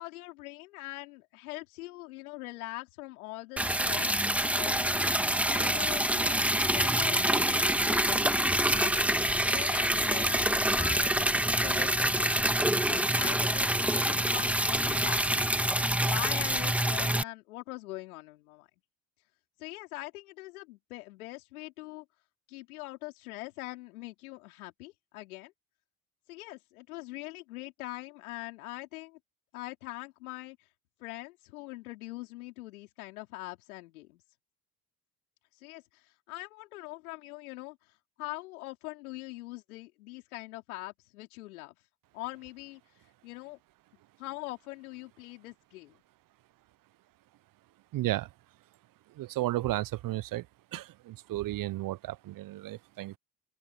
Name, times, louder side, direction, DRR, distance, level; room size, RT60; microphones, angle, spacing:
voice 1, 0.0-4.3 4.5-5.1 5.5-6.5 6.7-8.5 8.8-11.3 11.6-12.6 12.9-15.6 16.0-18.7 19.6-22.0 22.5-25.5 26.3-29.2 29.5-30.6 31.0-34.2 35.6-37.9 38.2-41.8 42.1-42.8 43.2-43.6 44.2-46.0, left 20 dB, 80° left, 5.0 m, -42 dB
Liquid, 3.6-17.2, right 1 dB, 5° right, 2.1 m, -26 dB
voice 2, 47.9-48.3 49.2-50.4 50.7-53.2, right 16 dB, 50° right, 0.9 m, -33 dB
open air
hypercardioid pair, 60°, 43 cm